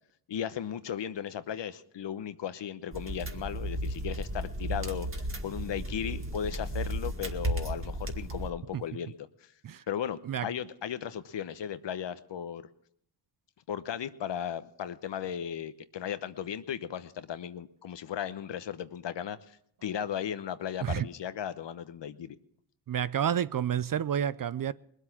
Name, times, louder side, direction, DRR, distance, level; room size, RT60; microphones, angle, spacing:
voice 1, 0.3-5.1 5.4-9.5 9.9-12.7 13.7-22.4, left 9 dB, 60° left, 1.0 m, -36 dB
sound 1, 2.9-8.5, right 1 dB, 25° right, 2.1 m, -34 dB
voice 2, 22.9-24.7, right 9 dB, 45° right, 0.6 m, -29 dB
20.5 x 8.2 x 5.9 m
supercardioid pair, 45°, 49 cm